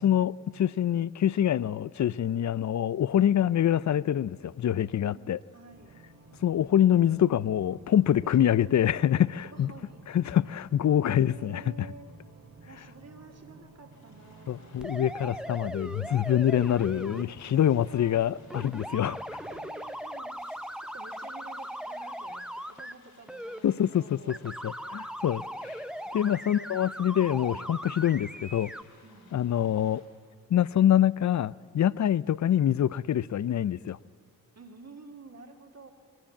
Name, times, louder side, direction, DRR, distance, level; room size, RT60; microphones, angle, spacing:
voice 1, 0.0-5.4 6.4-9.7 10.1-11.9 14.5-19.2 23.6-25.8 26.1-28.7 29.3-30.0 30.5-34.0, left 10 dB, 50° left, 0.5 m, -25 dB
voice 2, 5.0-6.0 8.2-8.7 9.1-10.0 11.0-12.1 12.7-14.9 16.6-18.2 19.4-20.3 20.8-22.4 22.7-24.5 26.4-26.8 29.0-29.3 34.5-35.9, right 3 dB, 45° right, 2.6 m, -50 dB
sound 1, 5.7-19.7, right 2 dB, 80° right, 4.9 m, -53 dB
sound 2, 13.9-30.0, left 3 dB, 90° left, 4.8 m, -61 dB
sound 3, 14.8-17.2 18.5-22.9 23.3-23.6 24.3-28.8, equal, ahead, 0.9 m, -39 dB
20.5 x 17.5 x 8.7 m
cardioid pair, 65°, 36 cm